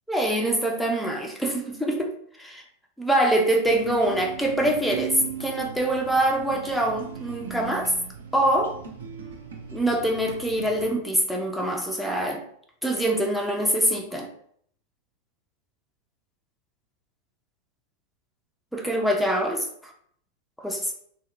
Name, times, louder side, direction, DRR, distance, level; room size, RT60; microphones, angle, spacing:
voice 1, 0.1-2.1 2.4-2.6 3.0-7.9 8.3-8.8 9.7-12.4 12.8-14.3 18.7-19.7 20.6-20.9, right 1 dB, ahead, 1 dB, 0.4 m, -24 dB
sound 1, 3.6-10.9, right 7 dB, 65° right, 0.5 m, -38 dB
2.7 x 2.1 x 2.3 m, 0.64 s
figure-of-eight pair, 90°, 0 cm